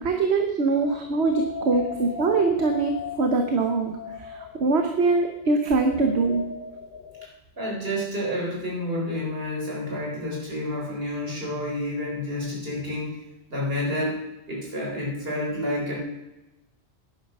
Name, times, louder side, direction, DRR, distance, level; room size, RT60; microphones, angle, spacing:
voice 1, 0.0-2.9 3.2-3.9 4.2-6.4, right 3 dB, 80° right, 5 dB, 1.3 m, -23 dB
sound 1, 0.8-7.3, left 6 dB, 55° left, 1.0 m, -37 dB
voice 2, 7.6-13.1 13.5-14.2 14.5-16.0, left 1 dB, 65° right, -2 dB, 4.2 m, -29 dB
11.0 x 10.5 x 5.4 m, 0.97 s
omnidirectional pair, 1.1 m